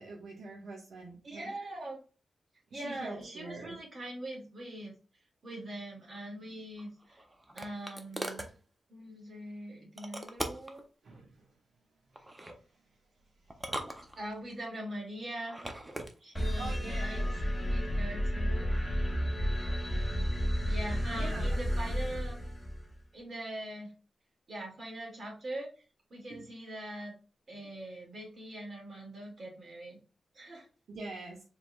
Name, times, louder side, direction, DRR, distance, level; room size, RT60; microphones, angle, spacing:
voice 1, 0.0-1.5 2.7-3.8 11.0-11.4 12.2-12.3 16.6-17.3 21.1-21.6 26.3-26.5 30.9-31.4, right 2 dB, 75° right, -3 dB, 1.1 m, -44 dB
voice 2, 1.2-2.0 2.7-4.9 5.4-7.2 7.5-8.5 8.9-10.8 14.2-15.6 16.2-17.2 17.7-19.0 20.7-22.4 23.1-23.9 24.5-25.7 26.1-27.1 27.5-30.0 30.3-30.7, right 1 dB, 40° right, -2 dB, 2.0 m, -42 dB
sound 1, 6.8-8.5 10.0-10.8 12.1-12.6 13.5-14.5 15.4-16.1, right 1 dB, 15° right, 0.5 m, -40 dB
sound 2, 16.3-22.9, equal, 5° left, 1.2 m, -31 dB
4.7 x 3.6 x 2.2 m, 0.35 s
wide cardioid pair, 155°, 0 cm